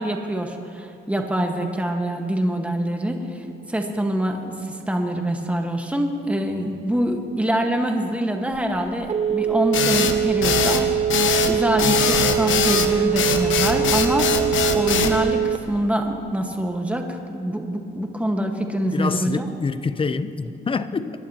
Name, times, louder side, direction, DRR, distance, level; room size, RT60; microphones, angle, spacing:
voice 1, 0.0-3.2 3.7-10.9 11.4-14.3 14.7-19.4, right 1 dB, 5° right, 1.5 m, -25 dB
Telephone, 8.5-15.9, right 9 dB, 35° right, 0.4 m, -23 dB
sound 1, 9.7-15.2, left 7 dB, 75° left, 1.2 m, -21 dB
voice 2, 18.9-21.2, left 4 dB, 25° left, 0.6 m, -26 dB
26.5 x 11.0 x 2.9 m
cardioid pair, 90°, 20 cm